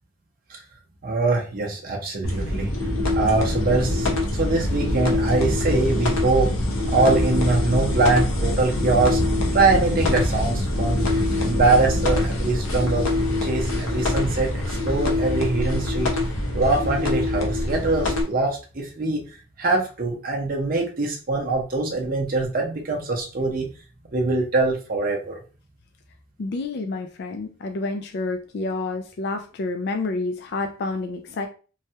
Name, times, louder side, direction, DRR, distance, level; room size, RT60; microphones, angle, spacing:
voice 1, 1.0-2.7 3.1-6.5 6.9-9.2 9.5-11.1 11.4-13.1 13.4-16.1 16.5-19.2 19.6-23.7 24.1-25.4, right 3 dB, 45° right, 0 dB, 0.6 m, -23 dB
sound 1, 2.2-18.2, left 1 dB, 85° left, 0.8 m, -24 dB
voice 2, 26.4-31.5, left 3 dB, 50° left, 4 dB, 0.3 m, -29 dB
3.1 x 2.2 x 2.7 m, 0.35 s
head